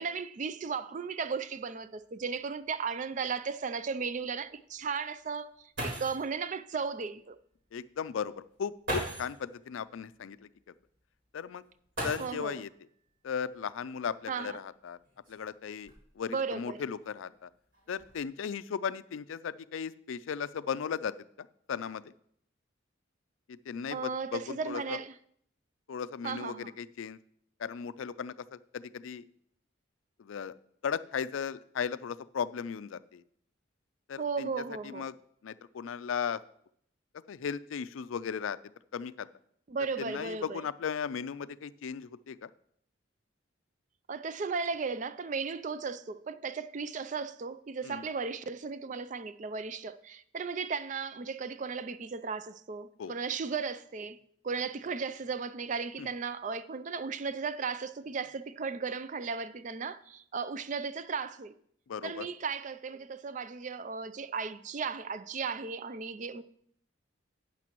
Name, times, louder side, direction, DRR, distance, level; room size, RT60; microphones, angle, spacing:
voice 1, 0.0-5.5 5.8-7.4 12.2-12.6 14.3-14.6 16.3-16.8 23.9-25.1 26.2-26.7 34.2-35.1 39.7-40.6 44.1-54.2 54.4-61.5 62.0-66.4, right 5 dB, 40° right, 0.4 m, -35 dB
sound 1, 1.9-2.0 2.3-2.4 3.1-3.2 5.4-5.5 5.8-6.3 7.6-7.7 8.8-9.4 11.9-12.7 14.0-14.1 14.9-16.3 17.0-17.4 17.7-18.1, right 1 dB, 65° right, 3.8 m, -38 dB
voice 2, 7.7-10.5 11.3-11.6 12.0-12.7 13.2-15.0 15.3-17.5 17.9-22.1 23.5-25.0 25.9-27.2 27.6-29.3 30.2-30.5 30.8-33.2 34.1-34.5 34.8-35.1 35.4-36.4 37.3-38.6 38.9-39.3 40.0-42.5 47.8-48.0 53.0-53.2 56.0-56.1 61.9-62.3, left 7 dB, 85° left, 0.4 m, -36 dB
12.0 x 8.9 x 3.0 m
head